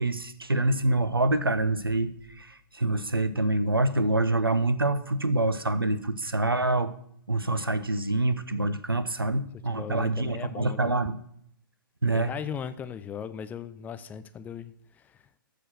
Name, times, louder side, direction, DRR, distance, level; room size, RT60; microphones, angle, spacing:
voice 1, 0.0-6.9 7.3-11.2 12.0-12.3, right 2 dB, 90° right, 0.9 m, -26 dB
voice 2, 9.7-10.9 12.1-15.2, left 7 dB, 15° left, 0.4 m, -38 dB
13.5 x 5.0 x 6.0 m
figure-of-eight pair, 120°, 12 cm